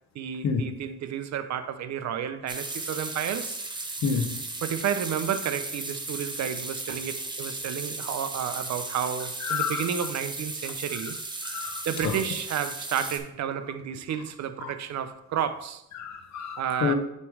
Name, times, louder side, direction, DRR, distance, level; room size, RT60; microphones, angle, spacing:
voice 1, 0.1-3.6 4.6-11.2 11.8-15.8 16.6-16.9, right 8 dB, 65° right, 0.7 m, -31 dB
sound 1, 2.5-13.2, right 2 dB, 15° right, 0.9 m, -36 dB
voice 2, 4.0-4.4 9.4-9.9 11.4-12.2 14.6-14.7 15.9-16.9, left 6 dB, 65° left, 0.9 m, -29 dB
8.2 x 3.2 x 4.8 m
cardioid pair, 90°, 30 cm